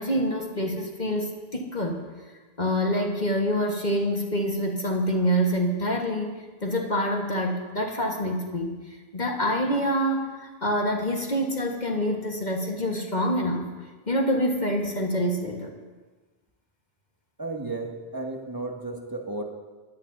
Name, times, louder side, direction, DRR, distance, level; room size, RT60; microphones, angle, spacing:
voice 1, 0.0-2.0 2.6-6.3 6.6-13.7 14.1-15.7, equal, 45° left, 1 dB, 1.7 m, -26 dB
voice 2, 17.4-19.4, right 2 dB, 20° right, 0 dB, 2.0 m, -33 dB
23.5 x 17.5 x 2.7 m, 1.3 s
omnidirectional pair, 1.1 m